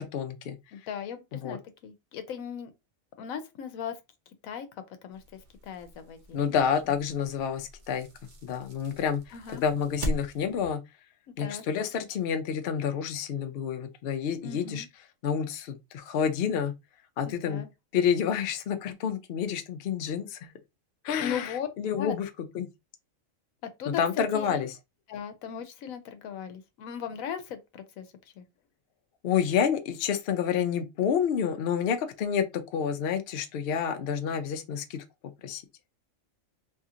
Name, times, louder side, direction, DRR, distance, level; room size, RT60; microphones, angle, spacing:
voice 1, 0.0-0.6 1.3-1.6 6.3-8.1 8.4-9.2 9.5-10.8 11.4-14.9 15.2-16.7 17.2-17.6 17.9-20.4 21.0-22.3 22.5-22.7 23.9-24.7 29.2-35.0 35.4-35.6, left 7 dB, 60° left, 0.6 m, -29 dB
voice 2, 0.7-2.7 3.2-3.9 4.4-5.2 5.6-6.6 9.3-9.6 11.3-11.6 14.4-14.9 17.3-17.7 21.2-21.7 22.0-22.1 23.8-24.7 25.1-28.1 28.4-28.5, left 8 dB, 85° left, 1.0 m, -38 dB
sound 1, 5.1-10.7, equal, 45° right, 0.7 m, -40 dB
2.8 x 2.7 x 2.4 m
omnidirectional pair, 1.4 m